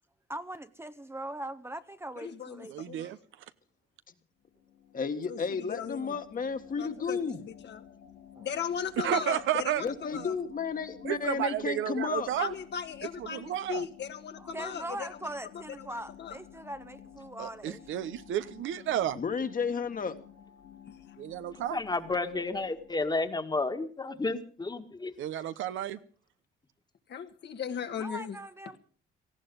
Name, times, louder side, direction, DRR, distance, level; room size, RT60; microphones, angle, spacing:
voice 1, 0.3-2.7 7.0-7.1 14.4-17.8 28.0-28.8, right 1 dB, 10° right, 0.8 m, -41 dB
voice 2, 2.2-3.1 5.3-6.2 6.8-7.8 8.4-10.4 12.4-16.4 27.1-28.4, left 7 dB, 60° left, 1.7 m, -38 dB
voice 3, 2.7-3.2 9.0-9.8 11.0-12.5 13.2-13.8 17.4-19.2 21.2-21.8 25.2-26.0, right 11 dB, 80° right, 0.9 m, -32 dB
sound 1, 4.4-23.4, left 8 dB, 90° left, 2.0 m, -53 dB
voice 4, 4.9-7.4 9.8-12.3 19.2-20.2, left 5 dB, 45° left, 1.7 m, -32 dB
voice 5, 21.5-25.1, left 3 dB, 20° left, 1.7 m, -32 dB
18.5 x 14.5 x 5.4 m
cardioid pair, 90°, 20 cm